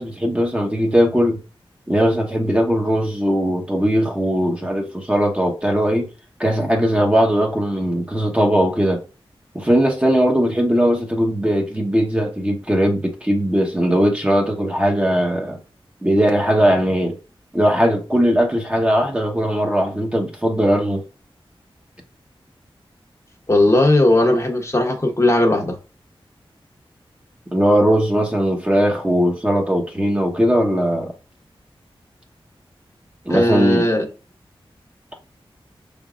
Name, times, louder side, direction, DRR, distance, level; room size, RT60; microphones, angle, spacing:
voice 1, 0.0-1.4 1.9-6.1 6.4-9.0 9.5-15.6 16.0-17.2 17.5-21.0 27.5-31.1 33.2-33.9, equal, 15° right, 1.0 m, -19 dB
voice 2, 23.5-25.8 33.3-34.1, left 1 dB, 30° left, 1.0 m, -17 dB
5.9 x 3.5 x 2.5 m
wide cardioid pair, 70°, 10 cm